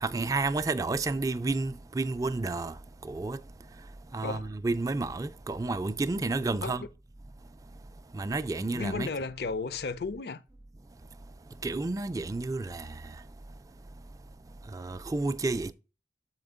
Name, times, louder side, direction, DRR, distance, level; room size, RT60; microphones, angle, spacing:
voice 1, 0.0-2.7 3.0-3.4 4.1-6.8 8.1-9.1 11.6-12.9 14.7-15.7, right 3 dB, 20° right, 0.3 m, -30 dB
voice 2, 8.7-10.4, left 4 dB, 60° left, 0.5 m, -34 dB
7.7 x 4.4 x 3.7 m
head